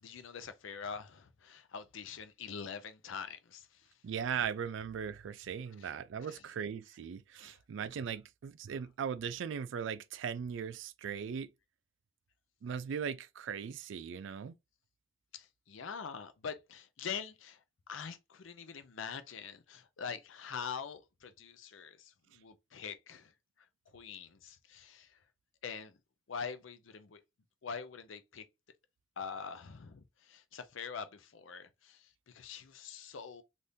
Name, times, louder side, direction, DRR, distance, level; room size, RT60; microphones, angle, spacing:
voice 1, 0.0-3.9 5.7-6.6 7.3-7.6 8.7-8.9 15.3-23.3 23.9-25.2 25.6-26.0 26.3-27.2 27.6-28.4 29.2-33.4, left 6 dB, 75° left, 0.5 m, -44 dB
voice 2, 4.0-11.5 12.6-14.6, right 7 dB, 70° right, 0.3 m, -38 dB
3.4 x 2.6 x 2.6 m
head